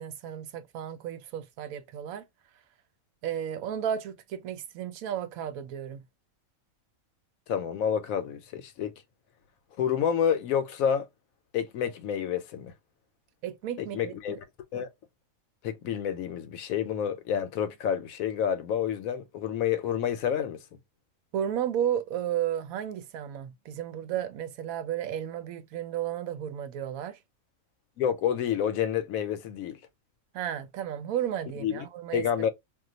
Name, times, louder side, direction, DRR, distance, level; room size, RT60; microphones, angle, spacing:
voice 1, 0.0-2.2 3.2-6.0 13.4-14.4 21.3-27.2 30.3-32.5, right 10 dB, 85° right, 1.0 m, -33 dB
voice 2, 7.5-8.9 9.8-11.1 11.5-12.7 13.8-14.4 14.7-14.9 15.6-20.6 28.0-29.8 31.6-31.8 32.1-32.5, left 8 dB, 85° left, 1.0 m, -29 dB
2.4 x 2.3 x 3.8 m
omnidirectional pair, 1.4 m